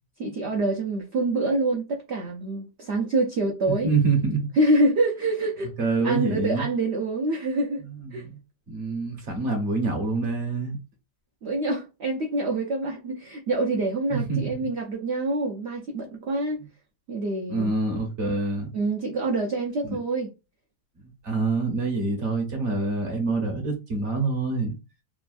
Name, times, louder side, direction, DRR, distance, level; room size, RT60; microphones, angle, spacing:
voice 1, 0.2-3.9 4.6-5.7 6.0-7.8 8.1-8.3 11.4-16.6 17.1-17.7 18.7-20.3, right 2 dB, 70° right, 0.6 m, -26 dB
voice 2, 3.7-4.5 5.8-6.6 7.8-8.4 8.7-10.8 14.1-14.5 17.5-18.7 19.8-20.0 21.2-24.8, right 3 dB, 50° right, 1.0 m, -26 dB
3.3 x 2.2 x 2.3 m
omnidirectional pair, 1.8 m